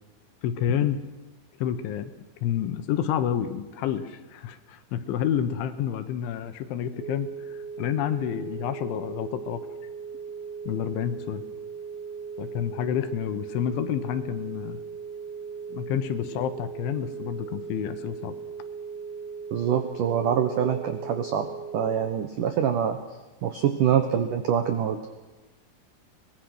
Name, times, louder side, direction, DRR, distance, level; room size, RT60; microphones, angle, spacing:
voice 1, 0.4-1.0 1.6-2.1 2.4-7.3 7.8-9.6 10.7-11.4 12.4-14.8 15.7-18.4, left 10 dB, 75° left, 10 dB, 3.5 m, -29 dB
sound 1, 7.0-22.0, right 6 dB, 50° right, 1.3 m, -38 dB
voice 2, 19.5-21.5 21.7-23.0 23.4-25.0, right 9 dB, 90° right, 7 dB, 1.8 m, -25 dB
24.0 x 20.5 x 6.3 m, 1.2 s
omnidirectional pair, 5.8 m